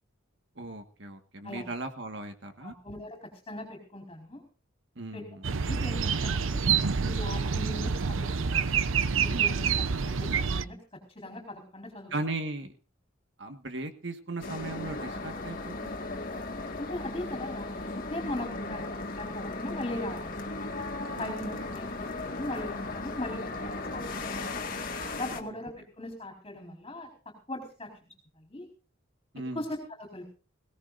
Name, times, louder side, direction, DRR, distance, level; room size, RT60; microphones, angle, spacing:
voice 1, 0.6-2.7 5.0-5.5 9.3-9.5 12.1-12.7 13.4-15.9 21.1-21.4 25.4-25.6 29.3-29.6, right 2 dB, 60° right, 7 dB, 1.6 m, -37 dB
voice 2, 2.6-4.4 5.1-5.2 5.6-6.6 7.0-8.6 9.2-9.6 10.0-10.8 11.1-12.1 16.8-18.9 19.2-20.4 21.2-24.5 25.1-27.9 28.4-28.7 29.5-30.3, left 1 dB, 25° left, 3 dB, 4.5 m, -39 dB
sound 1, 5.4-10.6, right 6 dB, 75° right, 0.7 m, -27 dB
sound 2, 14.4-25.4, left 2 dB, 40° left, 1.9 m, -36 dB
22.0 x 17.5 x 2.6 m, 0.36 s
head